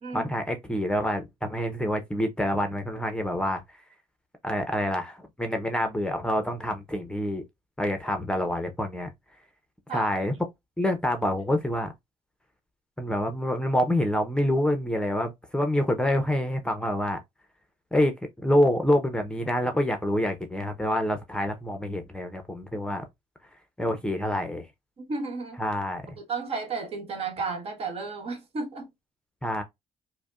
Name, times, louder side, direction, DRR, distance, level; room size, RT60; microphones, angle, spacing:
voice 1, 0.1-3.6 4.4-7.4 7.8-9.1 9.9-10.4 10.8-11.9 13.0-17.2 17.9-18.1 18.4-23.0 23.8-24.7 25.6-26.0 29.4-29.6, left 1 dB, 5° left, 0.7 m, -27 dB
voice 2, 25.0-25.6 26.3-28.9, right 4 dB, 50° right, 1.3 m, -33 dB
5.0 x 2.1 x 2.4 m
cardioid pair, 105°, 13 cm